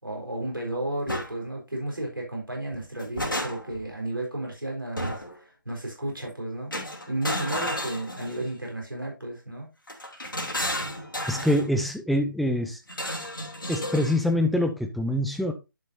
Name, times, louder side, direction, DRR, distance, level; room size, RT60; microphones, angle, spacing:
voice 1, 0.0-6.8 7.1-9.7, right 1 dB, 85° right, 4.2 m, -33 dB
sound 1, 1.1-1.3 2.7-3.8 5.0-5.4 6.7-8.6 9.9-11.7 12.9-14.2, left 1 dB, 75° left, 2.7 m, -32 dB
voice 2, 11.3-12.8 13.7-15.5, left 1 dB, ahead, 0.4 m, -25 dB
10.5 x 6.0 x 2.6 m
figure-of-eight pair, 150°, 11 cm